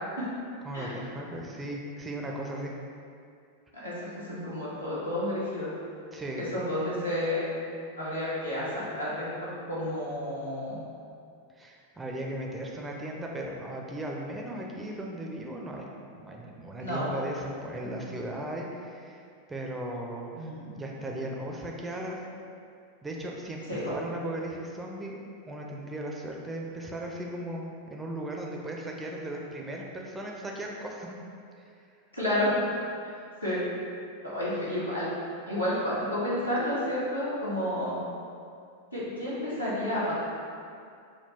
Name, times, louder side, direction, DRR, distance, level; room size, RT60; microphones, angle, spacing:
voice 1, 0.6-2.7 6.1-6.4 11.6-19.2 19.5-22.2 23.0-25.2 25.5-31.1, right 1 dB, 15° right, -1 dB, 0.4 m, -37 dB
voice 2, 4.3-5.7 6.4-7.5 8.0-10.8 16.8-17.0 17.8-18.1 20.3-20.8 23.7-23.9 32.1-32.8 33.4-33.6 34.2-35.1 35.5-38.0 38.9-40.1, left 1 dB, 85° left, -10 dB, 1.2 m, -30 dB
3.6 x 2.2 x 4.3 m, 2.4 s
figure-of-eight pair, 90°, 0 cm